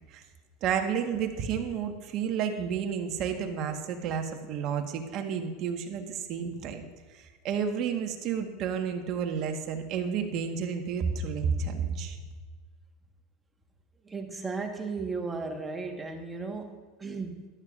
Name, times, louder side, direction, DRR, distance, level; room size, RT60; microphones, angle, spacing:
voice 1, 0.6-6.8 7.1-12.2, right 7 dB, 50° right, 5 dB, 1.3 m, -31 dB
voice 2, 14.0-17.5, right 4 dB, 15° right, 4 dB, 1.3 m, -35 dB
13.5 x 11.5 x 2.5 m, 1.4 s
supercardioid pair, 115°, 0 cm